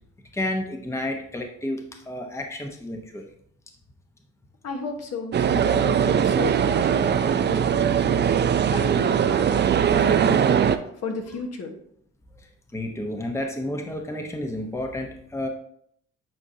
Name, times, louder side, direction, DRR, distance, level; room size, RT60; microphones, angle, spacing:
voice 1, 0.3-3.3 12.4-15.5, left 1 dB, 10° left, 3 dB, 0.8 m, -31 dB
voice 2, 4.6-8.3 8.6-9.6 10.0-10.7 11.0-11.8, left 4 dB, 55° left, 3 dB, 1.2 m, -34 dB
sound 1, 5.3-10.8, right 8 dB, 35° right, 0.4 m, -21 dB
8.8 x 4.4 x 2.7 m, 0.68 s
cardioid pair, 90°, 30 cm